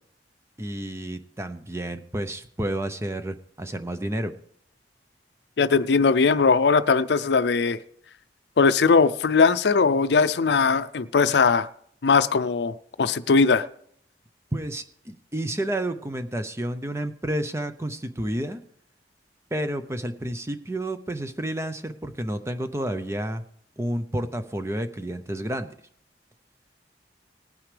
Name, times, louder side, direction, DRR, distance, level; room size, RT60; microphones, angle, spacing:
voice 1, 0.6-4.3 14.5-18.6 19.5-23.4 23.8-25.7, right 1 dB, 15° right, 0.6 m, -30 dB
voice 2, 5.6-7.8 8.6-11.7 12.0-13.7, left 5 dB, 70° left, 0.5 m, -20 dB
19.5 x 9.3 x 3.3 m
head